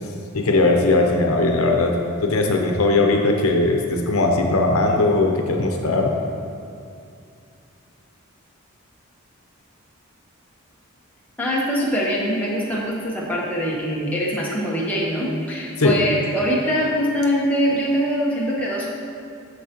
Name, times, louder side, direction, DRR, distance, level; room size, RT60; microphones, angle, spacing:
voice 1, 0.3-6.1 15.8-16.0, left 2 dB, 80° left, 2 dB, 0.7 m, -19 dB
voice 2, 11.4-18.9, equal, 5° left, -5 dB, 1.0 m, -23 dB
8.5 x 6.7 x 2.9 m, 2.5 s
head